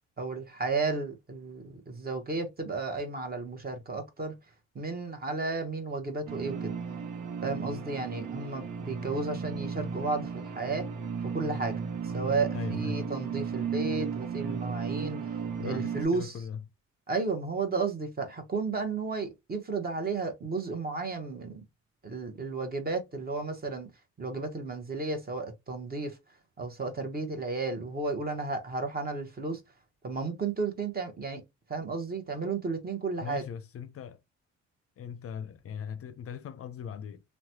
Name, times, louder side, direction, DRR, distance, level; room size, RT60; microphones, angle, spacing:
voice 1, 0.2-4.3 4.7-6.7 7.4-10.9 11.2-11.8 12.1-15.2 15.6-16.3 17.1-21.6 22.0-23.9 24.2-26.2 26.6-29.6 30.0-31.4 31.7-33.4, right 3 dB, 30° right, 0.9 m, -33 dB
sound 1, 6.3-16.0, right 6 dB, 85° right, 0.8 m, -34 dB
voice 2, 12.5-13.0 15.6-16.6 33.2-34.2 35.0-37.2, left 7 dB, 50° left, 0.5 m, -39 dB
3.1 x 2.1 x 2.8 m
cardioid pair, 90°, 30 cm